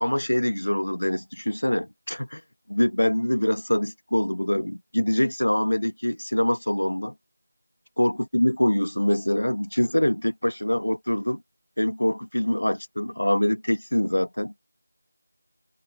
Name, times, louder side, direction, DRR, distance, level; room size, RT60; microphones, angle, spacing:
voice 1, 0.0-2.4 2.7-7.1 8.0-11.4 11.8-14.5, left 1 dB, 75° left, 1.3 m, -24 dB
open air
figure-of-eight pair, 170°, 0 cm